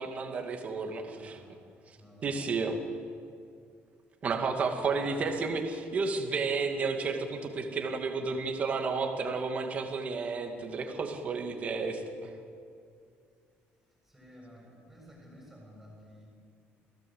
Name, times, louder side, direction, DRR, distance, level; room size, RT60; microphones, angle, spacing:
voice 1, 0.0-1.4 2.2-2.8 4.2-12.3, right 4 dB, 30° right, 3 dB, 2.3 m, -32 dB
voice 2, 1.0-1.6 1.9-2.4 5.0-5.2 14.1-16.3, equal, 5° right, -3 dB, 8.0 m, -53 dB
28.0 x 17.0 x 8.0 m, 2.3 s
cardioid pair, 175°, 5 cm